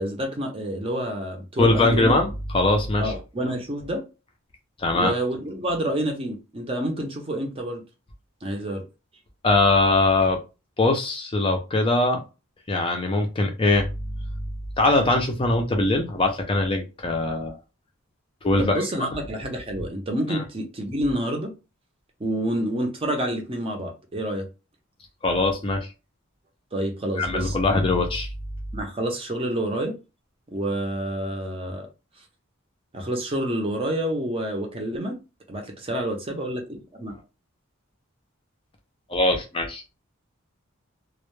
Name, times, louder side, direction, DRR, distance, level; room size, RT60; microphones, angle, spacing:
voice 1, 0.0-2.1 3.0-4.0 4.9-7.8 8.4-8.9 18.6-21.5 22.2-24.5 26.7-27.8 28.7-30.0 30.5-31.9 32.9-35.2 35.5-37.2, right 1 dB, 25° right, 0.6 m, -28 dB
voice 2, 1.6-3.1 4.8-5.1 9.4-10.4 10.8-12.2 12.7-13.9 14.8-17.6 18.4-18.8 20.3-20.4 25.2-25.9 27.2-28.3 39.1-39.8, left 2 dB, 25° left, 0.4 m, -21 dB
2.1 x 2.1 x 3.0 m
head